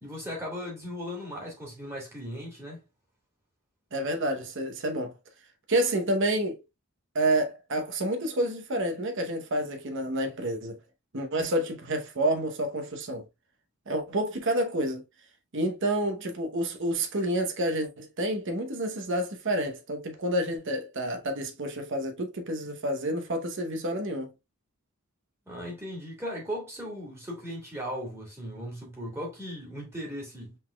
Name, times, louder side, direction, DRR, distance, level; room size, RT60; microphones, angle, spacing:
voice 1, 0.0-2.8 25.5-30.6, equal, 10° right, 2.0 m, -37 dB
voice 2, 3.9-5.1 5.7-6.6 7.1-10.8 11.1-13.2 13.9-15.0 15.5-24.3, right 1 dB, 55° right, 0.9 m, -29 dB
5.5 x 3.8 x 2.3 m
head